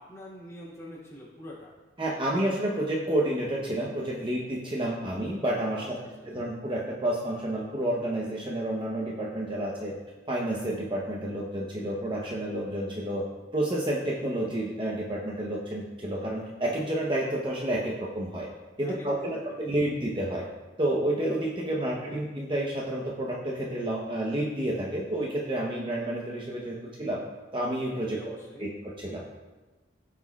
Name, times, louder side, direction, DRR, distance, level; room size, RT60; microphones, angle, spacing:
voice 1, 0.0-1.7 5.0-5.1 5.8-6.5 18.8-19.4 21.8-22.2 28.1-28.6, left 1 dB, 15° left, -7 dB, 2.7 m, -45 dB
voice 2, 2.0-6.0 6.3-9.9 10.3-13.3 13.5-18.5 18.8-20.5 20.8-27.2 27.5-28.2 28.6-29.2, right 1 dB, 25° right, -3 dB, 0.8 m, -30 dB
15.5 x 5.9 x 2.3 m, 1.2 s
head